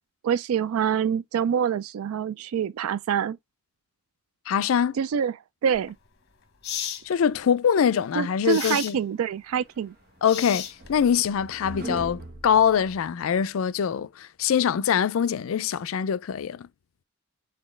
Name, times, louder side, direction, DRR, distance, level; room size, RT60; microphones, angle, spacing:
voice 1, 0.2-3.4 5.0-5.3 5.6-5.9 8.2-9.9, right 8 dB, 90° right, 0.3 m, -26 dB
voice 2, 4.5-5.0 7.0-9.0 10.2-16.7, left 8 dB, 75° left, 0.4 m, -23 dB
sound 1, 5.7-5.9 6.6-7.0 8.5-9.0 10.2-11.0, left 9 dB, 55° left, 1.0 m, -33 dB
sound 2, 9.8-13.4, right 2 dB, 45° right, 1.2 m, -40 dB
4.2 x 3.9 x 3.1 m
head